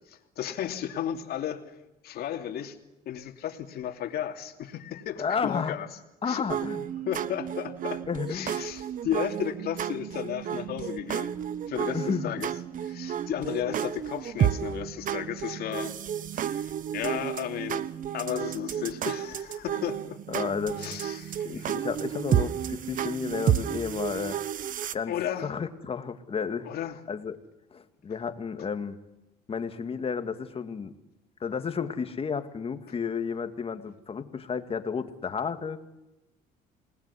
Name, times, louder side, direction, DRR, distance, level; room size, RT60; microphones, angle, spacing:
voice 1, 0.1-1.7 2.0-2.8 3.0-5.9 6.2-6.5 7.0-8.0 8.3-11.3 11.7-12.5 12.8-16.0 16.3-20.2 20.8-21.7 25.1-25.5 26.6-27.0 28.6-28.7, left 10 dB, 65° left, 5 dB, 2.9 m, -34 dB
voice 2, 5.2-5.8 6.2-6.8 8.1-8.5 11.9-12.4 20.3-20.9 21.4-24.4 24.9-25.1 25.4-26.7 27.1-27.4 27.7-29.0 29.5-30.9 31.4-35.8, left 6 dB, 35° left, 8 dB, 2.2 m, -32 dB
sound 1, 6.5-24.9, right 10 dB, 50° right, 1.1 m, -31 dB
28.5 x 19.5 x 9.9 m, 0.95 s
cardioid pair, 110°, 17 cm